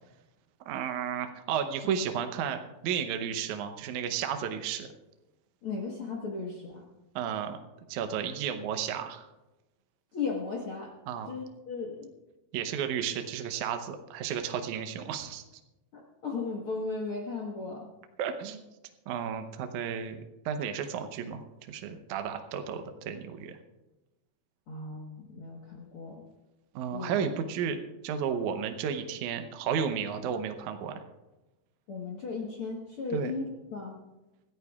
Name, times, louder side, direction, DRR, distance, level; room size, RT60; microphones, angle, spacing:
voice 1, 0.7-4.9 7.2-7.6 7.9-9.3 11.1-11.3 12.5-15.4 18.2-18.6 19.1-20.2 20.5-23.6 26.8-31.0 33.1-33.3, right 7 dB, 80° right, 6 dB, 1.7 m, -33 dB
voice 2, 5.6-6.9 10.1-10.9 11.2-12.1 15.9-17.9 24.7-26.2 26.9-27.1 31.9-34.0, left 4 dB, 65° left, -1 dB, 1.3 m, -36 dB
25.5 x 13.5 x 2.4 m, 1.0 s
omnidirectional pair, 4.6 m